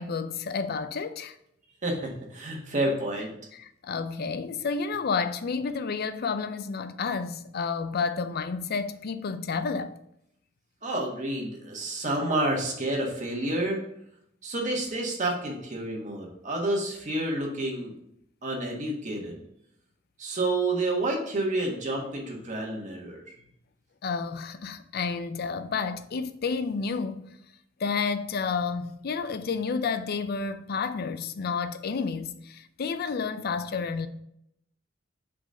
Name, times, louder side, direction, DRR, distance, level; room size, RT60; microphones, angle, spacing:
voice 1, 0.0-1.4 3.5-10.0 24.0-27.4 27.8-34.1, left 5 dB, 50° left, 0.4 m, -30 dB
voice 2, 1.8-3.3 10.8-13.8 14.4-17.9 18.4-19.4 20.2-23.3, right 2 dB, 40° right, 1.4 m, -29 dB
5.1 x 4.0 x 5.1 m
head